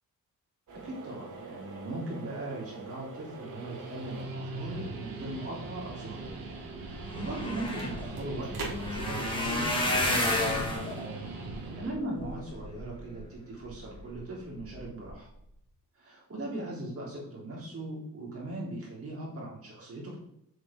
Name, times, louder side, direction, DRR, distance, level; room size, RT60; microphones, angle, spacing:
voice 1, 0.7-6.4 6.8-10.9 11.8-15.3 16.0-20.2, right 1 dB, 40° right, -4 dB, 3.4 m, -39 dB
sound 1, 0.7-10.7, right 4 dB, 55° right, 2.7 m, -47 dB
Guitar, 3.2-12.0, right 3 dB, 75° right, 1.7 m, -41 dB
sound 2, 6.8-13.2 13.7-14.2 14.6-14.8 15.1-15.2, left 1 dB, 15° left, 1.7 m, -32 dB
7.4 x 6.9 x 3.7 m, 0.75 s
cardioid pair, 145°, 35 cm